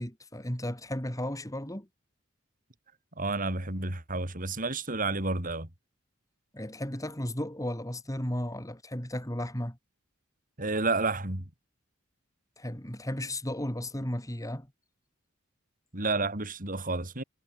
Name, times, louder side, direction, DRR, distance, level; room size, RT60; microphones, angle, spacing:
voice 1, 0.0-1.9 6.5-9.8 12.6-14.7, left 1 dB, 15° left, 4.5 m, -34 dB
voice 2, 3.2-5.7 10.6-11.5 15.9-17.2, right 3 dB, 40° right, 4.0 m, -30 dB
head